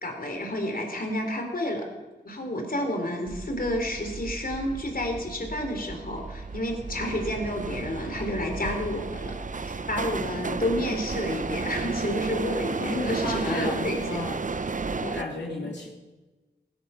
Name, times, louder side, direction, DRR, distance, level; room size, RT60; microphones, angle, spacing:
voice 1, 0.0-1.9 2.2-9.3 9.7-14.0, left 1 dB, 55° left, 3 dB, 3.5 m, -30 dB
sound 1, 3.3-15.2, right 4 dB, 45° right, 0.8 m, -33 dB
voice 2, 12.8-14.5 15.0-15.9, left 2 dB, 75° left, -5 dB, 3.0 m, -33 dB
16.5 x 12.5 x 5.7 m, 1.2 s
cardioid pair, 40°, 18 cm